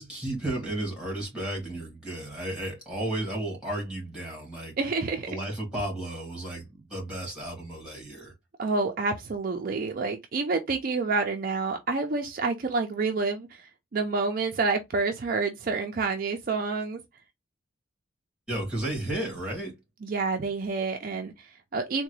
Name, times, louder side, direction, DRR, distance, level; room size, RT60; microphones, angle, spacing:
voice 1, 0.0-4.7 5.3-8.3 18.5-19.8, right 1 dB, 5° right, 1.5 m, -33 dB
voice 2, 4.8-5.3 8.6-17.0 20.0-22.0, right 4 dB, 45° right, 0.4 m, -28 dB
3.7 x 2.2 x 3.0 m
head